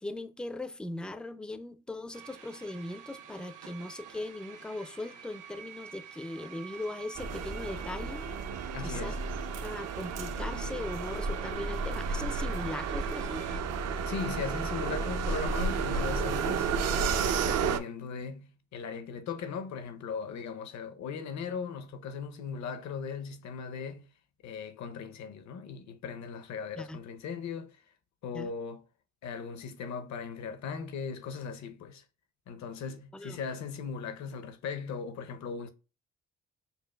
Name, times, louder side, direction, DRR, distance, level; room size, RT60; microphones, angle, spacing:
voice 1, 0.0-8.3 8.8-9.2 9.6-13.6 26.8-27.0 28.3-28.5 33.1-33.4, left 2 dB, 5° left, 0.3 m, -39 dB
sound 1, 2.1-13.6, right 7 dB, 80° right, 1.0 m, -48 dB
sound 2, 7.2-17.8, right 5 dB, 60° right, 0.5 m, -32 dB
voice 2, 8.7-9.2 14.0-24.1 24.4-27.8 28.2-28.8 29.2-32.0 32.5-35.7, left 6 dB, 65° left, 0.7 m, -38 dB
6.6 x 2.4 x 2.2 m
cardioid pair, 90°, 30 cm